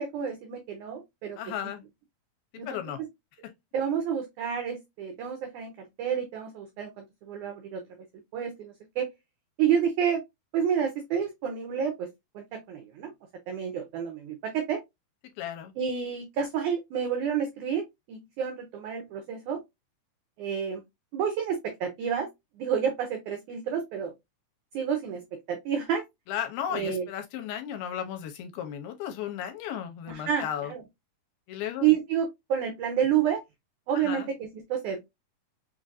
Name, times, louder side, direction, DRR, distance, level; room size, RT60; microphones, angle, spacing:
voice 1, 0.0-1.4 2.6-3.1 3.7-7.8 8.3-9.1 9.6-10.2 10.5-12.1 12.4-13.1 13.5-14.8 15.8-17.8 18.1-19.6 20.4-20.8 21.1-22.3 22.6-24.1 24.7-26.0 26.7-27.1 30.1-30.8 31.8-33.4 33.9-35.0, right 8 dB, 90° right, 1.7 m, -29 dB
voice 2, 1.4-1.8 2.5-3.0 15.4-15.7 26.3-30.7 31.5-31.9 33.9-34.3, left 9 dB, 80° left, 2.5 m, -35 dB
5.9 x 2.5 x 2.5 m
omnidirectional pair, 4.4 m